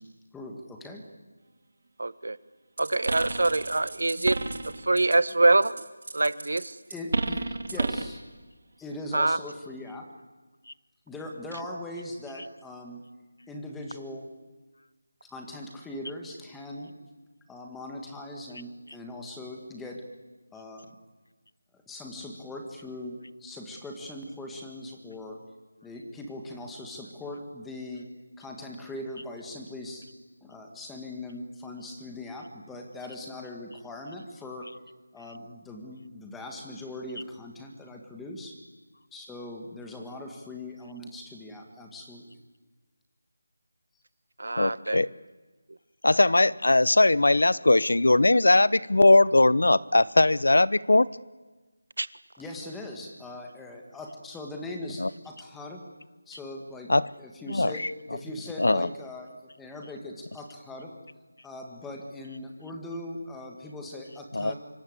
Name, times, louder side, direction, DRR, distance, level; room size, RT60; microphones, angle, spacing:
voice 1, 0.3-1.0 6.9-8.2 8.8-10.1 11.1-13.0 13.5-14.3 15.3-16.9 17.5-20.0 20.5-20.9 21.9-25.4 25.8-28.1 28.4-30.1 30.4-34.7 35.1-38.6 39.1-42.4 52.4-55.9 56.3-56.9 57.2-60.9 61.4-64.5, left 1 dB, 5° left, 2 dB, 2.0 m, -40 dB
voice 2, 2.0-2.4 2.8-4.4 4.6-5.8 6.1-6.8 9.1-9.4 44.4-45.0 52.0-52.1, right 2 dB, 75° right, 16 dB, 1.4 m, -24 dB
sound 1, 2.8-5.3 5.6-8.2, right 3 dB, 55° right, 2.7 m, -32 dB
voice 3, 44.6-45.1 46.0-51.1 55.0-55.1 56.9-57.1 57.5-57.9 58.6-58.9 64.3-64.5, left 2 dB, 80° left, 20 dB, 0.9 m, -20 dB
26.0 x 24.5 x 8.2 m, 1.2 s
figure-of-eight pair, 175°, 0 cm